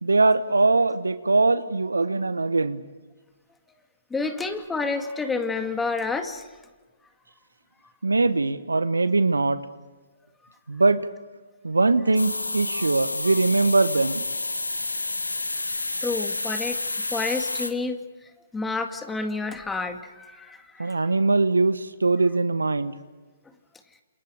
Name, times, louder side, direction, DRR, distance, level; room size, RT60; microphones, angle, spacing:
voice 1, 0.0-2.8 8.0-9.6 10.7-11.0 11.6-14.2 20.8-23.0, right 3 dB, 85° right, 13 dB, 1.3 m, -21 dB
voice 2, 4.1-6.5 12.8-12.9 16.0-16.8 17.1-21.0, left 4 dB, 10° left, 6 dB, 2.2 m, -29 dB
sound 1, 12.1-17.7, left 2 dB, 90° left, 2.1 m, -29 dB
29.5 x 28.0 x 5.0 m, 1.3 s
figure-of-eight pair, 130°, 0 cm